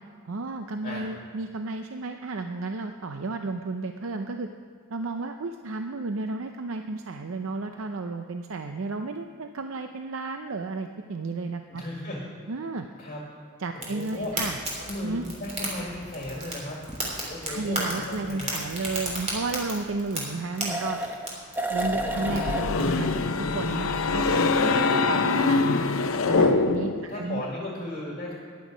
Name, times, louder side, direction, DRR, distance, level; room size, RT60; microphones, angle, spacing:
voice 1, 0.3-4.5 4.9-11.8 12.5-12.9 13.6-14.6 15.0-15.3 17.5-21.0 21.7-23.1 23.5-25.6 26.3-27.5, right 3 dB, 65° right, 6 dB, 0.6 m, -32 dB
voice 2, 11.7-12.3 13.0-13.2 13.7-14.4 14.8-17.0 17.3-18.6 22.0-22.2 24.8-25.2 26.9-28.3, left 1 dB, 40° left, -2 dB, 1.8 m, -36 dB
Fire, 13.7-22.8, right 1 dB, 35° right, 3.3 m, -35 dB
sound 1, 16.9-17.0 20.6-21.3 21.6-22.7, right 1 dB, 10° right, 1.0 m, -30 dB
sound 2, 21.8-27.1, left 3 dB, 70° left, 0.6 m, -24 dB
14.5 x 10.5 x 5.0 m, 2.2 s
head